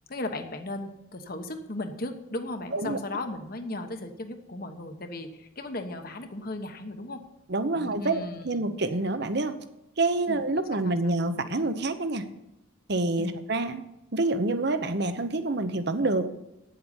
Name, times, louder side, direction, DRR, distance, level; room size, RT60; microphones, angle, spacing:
voice 1, 0.1-7.2 7.7-8.7 10.3-10.5 10.7-11.1 13.2-13.4, left 2 dB, 45° left, 6 dB, 1.2 m, -36 dB
voice 2, 7.5-9.5 10.0-12.3 12.9-13.8 14.1-16.3, right 2 dB, 55° right, 10 dB, 0.9 m, -27 dB
9.5 x 7.8 x 7.1 m, 0.89 s
head